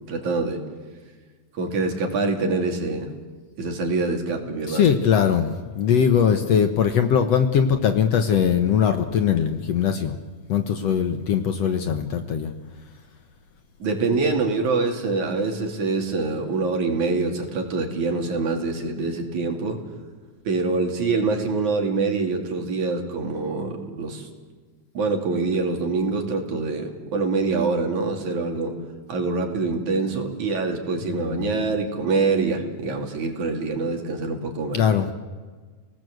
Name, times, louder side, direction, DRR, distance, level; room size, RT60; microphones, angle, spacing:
voice 1, 0.1-0.6 1.6-3.1 3.6-4.9 13.8-19.8 20.5-24.3 24.9-28.8 29.1-34.8, right 3 dB, 65° right, 2 dB, 4.1 m, -25 dB
voice 2, 4.7-10.2 10.5-12.5 31.0-31.5 34.7-35.1, left 7 dB, 60° left, 7 dB, 2.0 m, -21 dB
29.5 x 18.5 x 7.9 m, 1.4 s
omnidirectional pair, 3.8 m